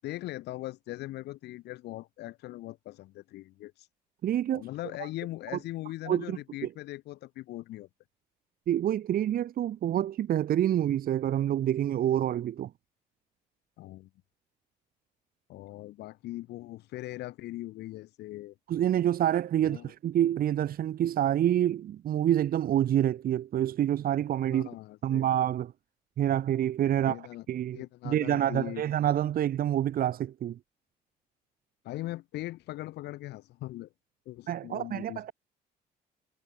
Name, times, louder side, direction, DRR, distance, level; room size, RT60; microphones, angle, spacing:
voice 1, 0.0-3.9 4.5-7.9 13.8-14.1 15.5-18.5 19.7-19.9 24.5-25.2 27.1-27.4 27.7-28.8 31.8-33.9 34.2-35.3, left 16 dB, 80° left, 6.6 m, -40 dB
voice 2, 4.2-4.6 6.1-6.7 8.7-12.7 18.7-24.7 25.0-25.7 26.2-27.2 27.5-27.8 28.1-30.6 34.5-35.3, right 11 dB, 60° right, 5.2 m, -27 dB
cardioid pair, 110°, 17 cm